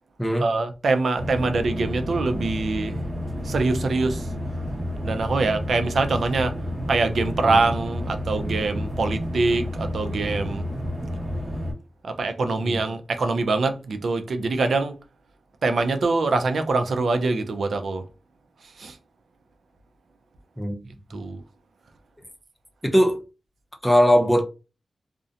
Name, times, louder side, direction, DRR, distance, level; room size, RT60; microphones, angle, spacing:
voice 1, 0.4-3.0 3.4-4.3 5.0-6.6 6.9-10.7 12.0-15.0 15.6-18.1 18.8-19.0 21.1-21.4, right 3 dB, 85° right, 0.4 m, -24 dB
sound 1, 1.2-11.7, left 1 dB, 35° right, 0.9 m, -30 dB
voice 2, 22.8-23.2 23.8-24.4, equal, 5° left, 0.6 m, -19 dB
2.5 x 2.1 x 2.6 m
wide cardioid pair, 155°, 0 cm